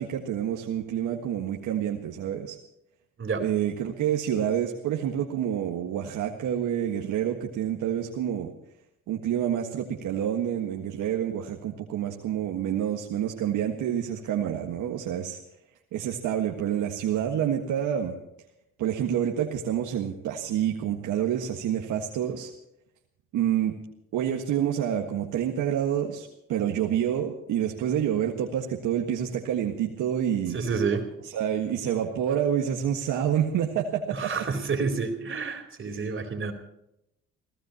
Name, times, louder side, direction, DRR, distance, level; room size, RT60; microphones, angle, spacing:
voice 1, 0.0-2.6 3.4-8.5 9.1-15.4 15.9-18.2 18.8-22.5 23.3-23.7 24.1-30.6 31.2-34.3 35.9-36.1, right 10 dB, 85° right, 1 dB, 1.7 m, -28 dB
voice 2, 30.5-31.0 34.1-36.5, right 5 dB, 40° right, 4 dB, 4.1 m, -29 dB
28.0 x 16.5 x 3.0 m, 0.84 s
cardioid pair, 90°, 30 cm